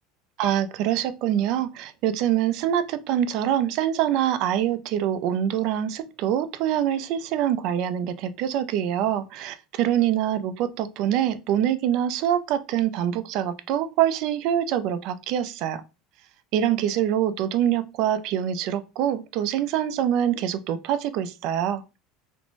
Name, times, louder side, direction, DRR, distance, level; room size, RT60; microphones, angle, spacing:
voice 1, 0.4-15.8 16.5-21.8, right 10 dB, 55° right, 0.3 m, -25 dB
2.5 x 2.1 x 3.0 m
cardioid pair, 155°, 0 cm